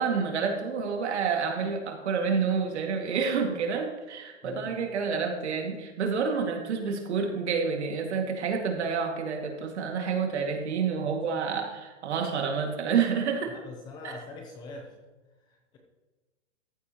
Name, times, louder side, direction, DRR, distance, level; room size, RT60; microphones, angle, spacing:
voice 1, 0.0-13.5 14.0-14.2, right 6 dB, 60° right, 2 dB, 2.3 m, -29 dB
voice 2, 4.4-4.7 13.5-14.9 15.4-15.8, left 3 dB, 10° left, 1 dB, 0.7 m, -43 dB
14.0 x 9.6 x 3.0 m, 1.2 s
hypercardioid pair, 160°, 37 cm